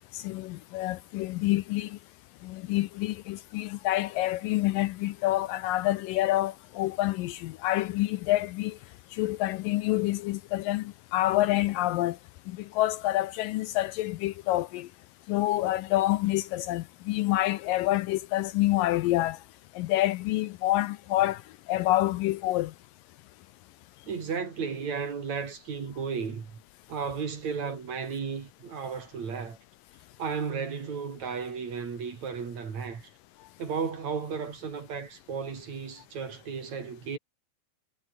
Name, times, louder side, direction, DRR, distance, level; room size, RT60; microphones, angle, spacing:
voice 1, 0.1-2.0 2.4-8.8 9.1-12.2 12.7-14.9 15.3-19.4 19.8-21.4 21.7-22.7, left 16 dB, 80° left, 2.2 m, -27 dB
voice 2, 24.1-26.5 26.9-29.6 30.2-33.1 33.6-37.2, right 6 dB, 50° right, 4.4 m, -34 dB
omnidirectional pair, 4.3 m